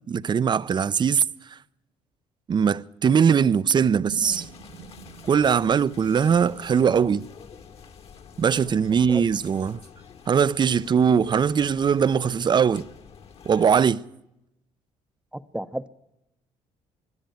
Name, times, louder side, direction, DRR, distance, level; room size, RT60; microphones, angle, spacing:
voice 1, 0.1-1.2 1.5-1.6 2.5-4.5 5.2-7.3 8.4-9.8 10.3-12.9 13.4-14.0, right 7 dB, 35° right, 0.6 m, -21 dB
sound 1, 3.4-7.9, right 9 dB, 85° right, 1.7 m, -44 dB
sound 2, 4.2-13.9, left 6 dB, 55° left, 2.1 m, -47 dB
voice 2, 15.3-15.9, right 1 dB, 5° right, 0.8 m, -32 dB
22.0 x 13.0 x 9.2 m
cardioid pair, 85°, 12 cm